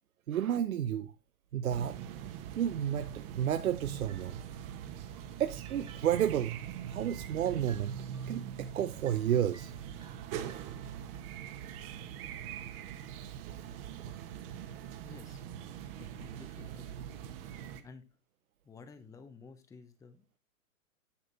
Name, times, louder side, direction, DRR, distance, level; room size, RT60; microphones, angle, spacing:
voice 1, 0.3-1.1 1.5-2.0 2.6-4.4 5.4-6.6 6.9-7.9 8.3-9.7, right 10 dB, 70° right, 0.9 m, -31 dB
sound 1, 1.7-17.8, right 9 dB, 40° right, 1.4 m, -42 dB
sound 2, 4.1-11.2, right 5 dB, 10° right, 1.7 m, -60 dB
voice 2, 15.0-15.4 15.9-17.1 17.8-18.1 18.6-20.4, left 4 dB, 5° left, 0.8 m, -52 dB
10.0 x 6.7 x 4.1 m
hypercardioid pair, 120°, 44 cm